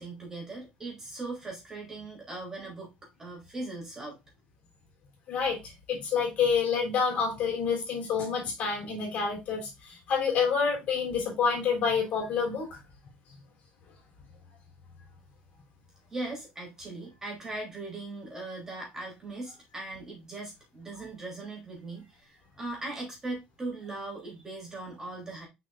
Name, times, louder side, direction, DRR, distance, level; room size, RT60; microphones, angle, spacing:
voice 1, 0.0-4.2 16.1-25.5, right 2 dB, 15° right, 3.4 m, -39 dB
voice 2, 5.9-12.8, left 6 dB, 55° left, 3.5 m, -28 dB
6.3 x 5.9 x 2.5 m
cardioid pair, 140°, 3 cm